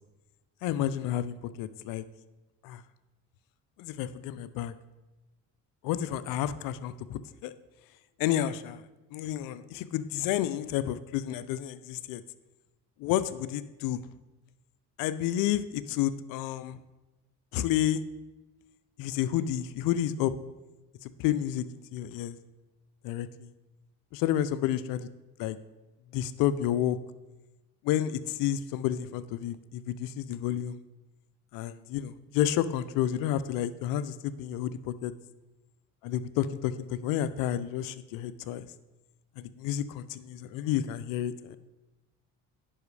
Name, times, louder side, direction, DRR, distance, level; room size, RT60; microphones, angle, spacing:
voice 1, 0.6-2.0 2.6-2.8 3.8-4.7 5.8-7.5 8.2-8.8 9.1-12.2 13.0-14.0 15.0-16.8 17.5-18.0 19.0-20.3 21.0-21.6 21.9-22.4 23.0-23.5 24.1-25.1 25.4-25.6 26.1-27.0 27.8-30.8 31.5-35.1 36.0-38.7 39.4-41.6, left 11 dB, 80° left, 14 dB, 0.5 m, -30 dB
10.0 x 5.5 x 3.3 m, 1.1 s
supercardioid pair, 85°, 33 cm